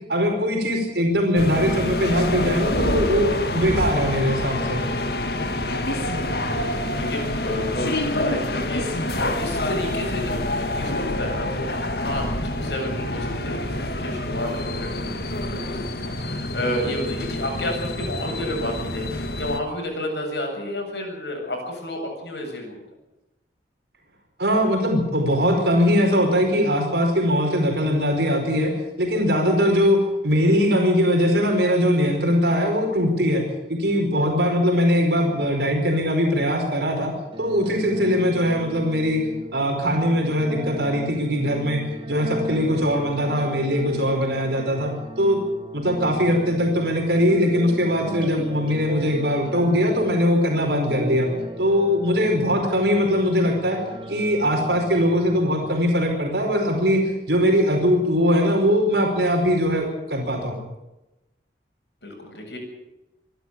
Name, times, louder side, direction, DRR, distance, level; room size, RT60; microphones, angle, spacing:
voice 1, 0.1-4.8 24.4-28.7 29.0-33.4 33.7-37.1 37.4-39.2 39.5-41.8 42.1-45.4 45.7-51.3 51.6-53.8 54.1-57.0 57.3-60.6, equal, 70° right, 2 dB, 4.9 m, -21 dB
sound 1, 1.3-19.6, left 1 dB, 65° left, 2.0 m, -27 dB
voice 2, 6.5-22.8 62.0-62.6, left 1 dB, 80° left, 2 dB, 7.5 m, -31 dB
sound 2, 37.3-56.3, equal, 30° right, 2.3 m, -37 dB
25.5 x 12.0 x 8.6 m, 0.95 s
head